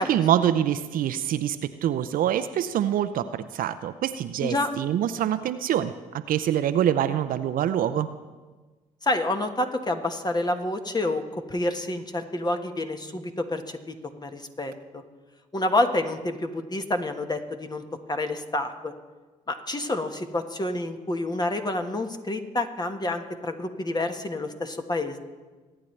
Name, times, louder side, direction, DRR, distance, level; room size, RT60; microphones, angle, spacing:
voice 1, 0.0-8.1, right 10 dB, 65° right, 11 dB, 0.6 m, -25 dB
voice 2, 9.0-15.0 15.5-17.8 18.1-18.9 19.5-25.2, left 2 dB, 25° left, 6 dB, 1.5 m, -28 dB
24.0 x 9.1 x 3.3 m, 1.3 s
hypercardioid pair, 50°, 16 cm